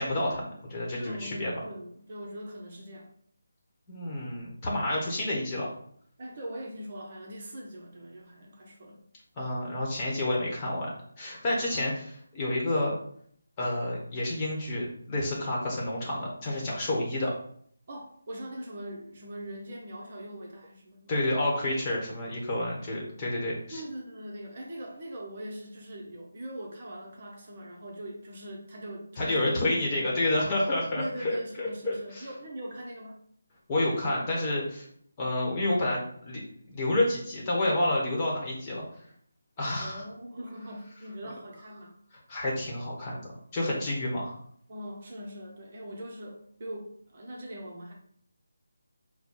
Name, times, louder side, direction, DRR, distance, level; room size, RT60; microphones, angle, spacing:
voice 1, 0.0-1.5 3.9-5.7 9.4-10.9 11.2-13.0 13.6-17.3 21.1-23.8 29.2-32.3 33.7-34.9 35.2-36.4 36.7-38.8 39.6-40.0 42.3-44.3, left 1 dB, 20° left, -3 dB, 1.2 m, -29 dB
voice 2, 1.0-3.1 6.2-9.0 11.7-11.8 17.9-21.1 23.7-30.2 30.9-33.2 39.8-42.0 44.7-47.9, equal, 40° right, -1 dB, 0.9 m, -41 dB
4.4 x 2.2 x 4.3 m, 0.63 s
figure-of-eight pair, 165°, 0 cm